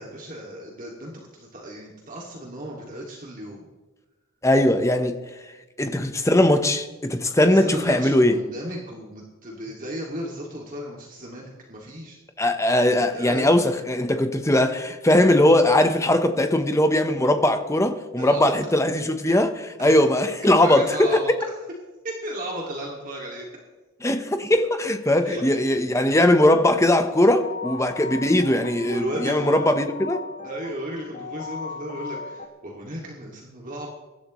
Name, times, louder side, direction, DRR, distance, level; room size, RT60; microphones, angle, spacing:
voice 1, 0.0-3.6 7.5-12.2 13.1-13.5 18.2-18.5 19.8-19.9 20.4-21.3 22.0-23.5 25.2-25.4 28.9-29.9 30.4-33.9, right 1 dB, 40° right, 2.4 m, -34 dB
voice 2, 4.4-5.2 5.8-8.4 12.4-21.1 24.0-30.2, left 1 dB, 15° left, 1.0 m, -20 dB
sound 1, 26.8-32.5, left 4 dB, 35° left, 1.4 m, -37 dB
23.5 x 12.0 x 3.2 m
head